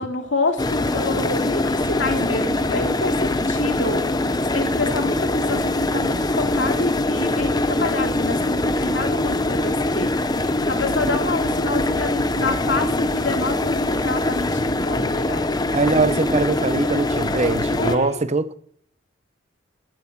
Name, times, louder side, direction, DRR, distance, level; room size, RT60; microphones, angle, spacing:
voice 1, 0.0-4.1 4.5-15.5 17.8-18.2, left 3 dB, 70° left, 2.6 m, -27 dB
sound 1, 0.6-18.0, left 2 dB, 20° left, 0.8 m, -23 dB
voice 2, 15.7-18.6, right 3 dB, 35° right, 0.8 m, -22 dB
14.0 x 11.0 x 7.3 m
head